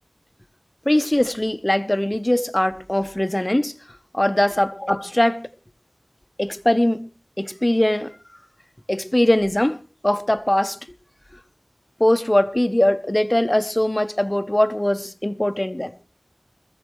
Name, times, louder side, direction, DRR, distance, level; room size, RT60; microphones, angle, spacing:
voice 1, 0.9-3.7 4.1-5.4 6.4-7.1 7.4-8.2 8.9-10.8 12.0-15.9, left 1 dB, 25° left, 0.9 m, -21 dB
21.0 x 14.5 x 3.1 m
wide cardioid pair, 50°, 0 cm